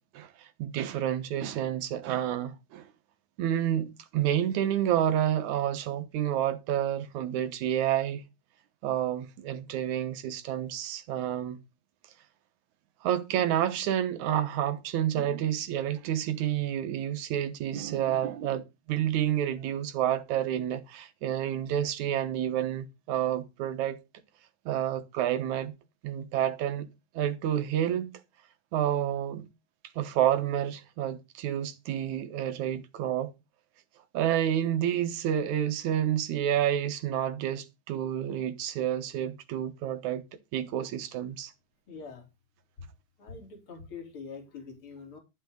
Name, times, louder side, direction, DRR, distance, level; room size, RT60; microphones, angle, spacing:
voice 1, 0.1-2.8 3.4-8.2 8.8-11.6 13.0-24.0 24.7-25.7 26.0-26.9 27.1-28.1 28.7-29.5 30.0-33.3 34.1-40.2 40.5-41.5, right 11 dB, 75° right, 2.6 m, -29 dB
voice 2, 41.9-42.2 43.2-45.2, left 5 dB, 45° left, 4.2 m, -44 dB
13.0 x 11.0 x 3.9 m
omnidirectional pair, 3.5 m